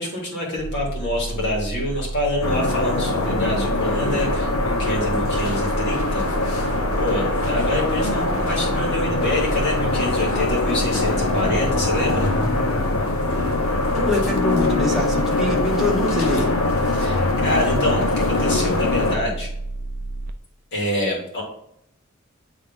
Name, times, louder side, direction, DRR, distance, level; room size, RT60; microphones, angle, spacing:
voice 1, 0.0-6.3 6.9-12.3 16.9-19.5 20.7-21.4, left 1 dB, 55° left, -3 dB, 2.3 m, -26 dB
sound 1, 0.6-20.3, right 2 dB, 45° right, 0.4 m, -31 dB
sound 2, 2.4-19.2, left 2 dB, 75° left, 0.9 m, -23 dB
voice 2, 13.9-16.5, left 1 dB, ahead, -3 dB, 1.4 m, -24 dB
8.8 x 3.5 x 3.6 m, 0.77 s
head